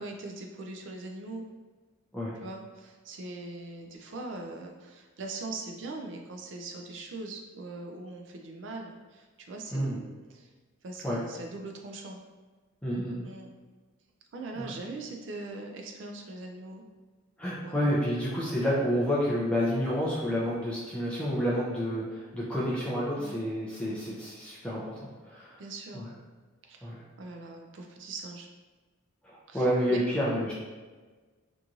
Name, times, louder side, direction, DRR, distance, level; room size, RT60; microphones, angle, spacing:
voice 1, 0.0-1.5 2.4-10.5 10.8-12.2 13.2-13.5 14.3-16.9 17.6-17.8 23.2-23.4 25.6-26.0 26.6-26.9 27.2-28.5 29.5-30.0, right 2 dB, 60° right, 2 dB, 0.4 m, -41 dB
voice 2, 12.8-13.2 14.6-14.7 17.4-25.6 25.9-26.1 26.8-27.0 29.2-30.5, equal, 5° left, -7 dB, 0.4 m, -29 dB
2.9 x 2.6 x 2.3 m, 1.3 s
head